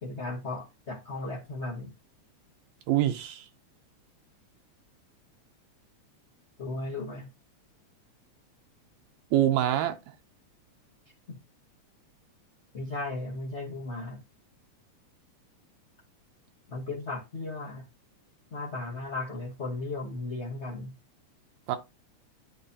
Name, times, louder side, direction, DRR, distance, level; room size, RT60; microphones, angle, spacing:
voice 1, 0.0-1.9 6.6-7.3 11.3-11.4 12.7-14.2 16.7-17.8 18.5-21.0, left 2 dB, 80° left, 0.6 m, -36 dB
voice 2, 2.9-3.5 9.3-10.0 21.7-21.8, right 12 dB, 75° right, 1.8 m, -25 dB
11.5 x 4.0 x 2.8 m
omnidirectional pair, 3.4 m